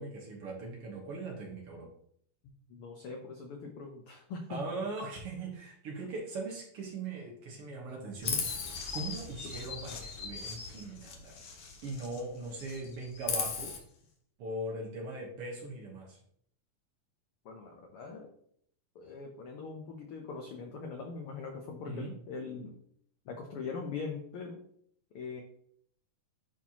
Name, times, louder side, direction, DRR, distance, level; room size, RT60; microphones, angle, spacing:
voice 1, 0.0-1.9 4.5-8.4 8.9-11.4 11.8-13.7 14.4-16.2 21.9-22.1, right 2 dB, 60° right, 0 dB, 1.8 m, -40 dB
voice 2, 2.4-4.8 17.4-18.3 18.9-22.8 23.2-24.6 25.1-25.4, left 4 dB, 75° left, 2 dB, 1.2 m, -42 dB
Chirp tweet, 8.2-12.3 12.5-13.8, left 5 dB, 60° left, 1.8 m, -38 dB
10.5 x 4.4 x 2.8 m, 0.66 s
omnidirectional pair, 3.5 m